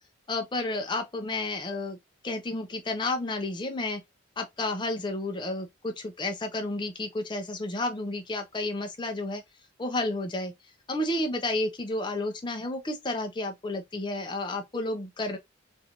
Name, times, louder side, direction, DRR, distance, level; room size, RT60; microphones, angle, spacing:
voice 1, 0.3-2.0 2.2-4.0 4.4-9.4 9.8-10.5 10.9-15.4, left 2 dB, 20° left, 0.5 m, -31 dB
3.1 x 2.5 x 2.8 m
head